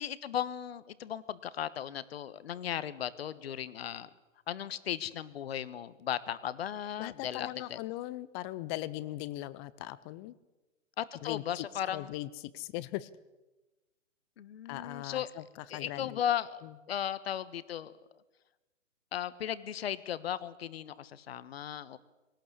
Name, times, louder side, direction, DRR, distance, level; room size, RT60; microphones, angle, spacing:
voice 1, 0.0-4.1 4.5-7.8 11.0-12.1 14.4-15.3 15.7-16.6 16.9-17.9 19.1-22.0, left 10 dB, 55° left, 16 dB, 1.4 m, -36 dB
voice 2, 7.0-10.3 11.2-13.1 14.7-16.2 16.6-16.7, left 16 dB, 20° left, 18 dB, 0.7 m, -39 dB
23.0 x 18.5 x 8.3 m, 1.1 s
figure-of-eight pair, 125°, 37 cm